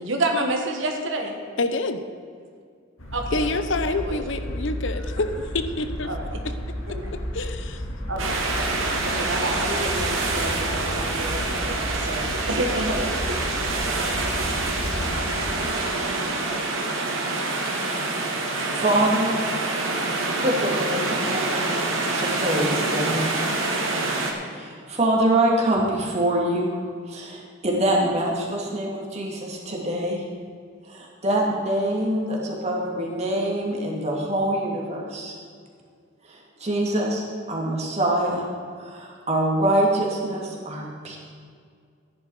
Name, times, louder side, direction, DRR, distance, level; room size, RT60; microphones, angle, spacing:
voice 1, 0.0-1.3 3.1-3.5 3.9-4.2 6.1-6.3 6.9-7.1 8.1-8.4 9.0-13.4, right 1 dB, 70° right, 3 dB, 1.6 m, -29 dB
voice 2, 1.6-2.0 3.3-6.1 6.4-6.5 6.9-7.8 8.9-9.0, left 2 dB, 65° left, 9 dB, 0.8 m, -27 dB
sound 1, 3.0-15.5, equal, 85° left, 2.4 m, -33 dB
sound 2, 8.2-24.3, right 2 dB, 85° right, 2.2 m, -26 dB
voice 3, 17.7-18.2 18.7-19.3 20.4-23.2 24.5-26.8 27.1-30.2 30.9-35.3 36.3-38.5 38.8-41.2, right 1 dB, 35° right, -2 dB, 2.4 m, -25 dB
14.5 x 10.5 x 4.8 m, 2.1 s
head